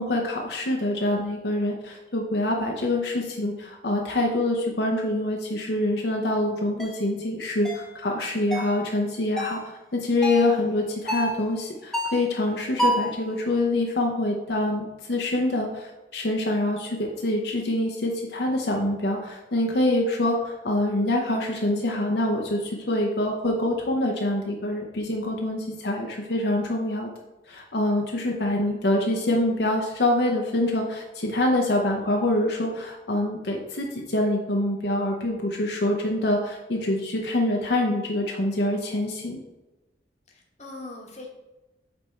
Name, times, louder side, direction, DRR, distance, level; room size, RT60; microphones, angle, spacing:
voice 1, 0.0-9.6 9.9-27.1 27.5-39.4, left 1 dB, 70° left, 0 dB, 0.8 m, -25 dB
sound 1, 6.8-7.0 7.6-7.9 8.5-8.8 9.4-9.6 10.2-10.5 11.1-11.4 11.9-12.3 12.8-13.1, equal, ahead, 0.7 m, -27 dB
voice 2, 40.3-41.3, left 2 dB, 40° left, -1 dB, 1.1 m, -42 dB
7.9 x 3.4 x 4.4 m, 1.1 s
head